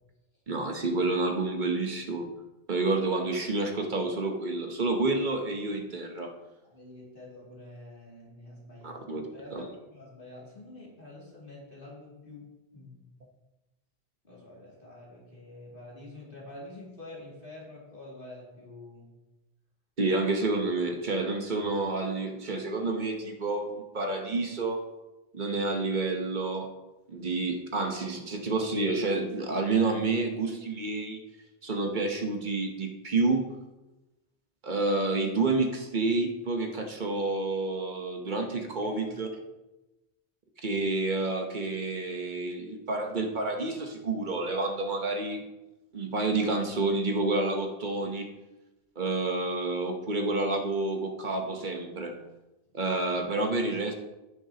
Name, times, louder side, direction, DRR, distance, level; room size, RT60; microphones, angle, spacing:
voice 1, 0.5-2.3 2.7-6.3 8.8-9.2 9.5-9.7 20.0-24.9 25.3-26.7 27.1-31.2 31.6-33.5 34.6-39.3 40.6-45.5 45.9-48.3 49.0-52.2 52.7-53.9, right 3 dB, 50° right, 3 dB, 1.1 m, -29 dB
voice 2, 6.6-9.0 9.3-13.0 14.2-19.1 38.5-39.1, left 2 dB, 55° left, -5 dB, 2.8 m, -47 dB
15.5 x 6.3 x 2.9 m, 1.0 s
omnidirectional pair, 1.1 m